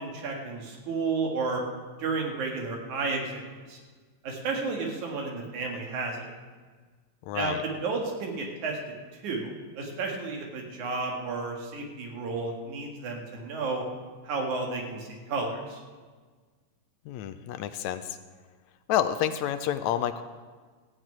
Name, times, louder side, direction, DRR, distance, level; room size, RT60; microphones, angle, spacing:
voice 1, 0.0-1.6 2.0-3.4 3.7-3.8 4.2-6.3 7.3-8.9 9.2-13.8 14.2-15.8, right 3 dB, 80° right, 0 dB, 3.2 m, -32 dB
voice 2, 7.3-7.6 17.1-18.2 18.9-20.2, left 10 dB, 80° left, 10 dB, 1.8 m, -29 dB
15.0 x 6.5 x 8.8 m, 1.5 s
omnidirectional pair, 3.4 m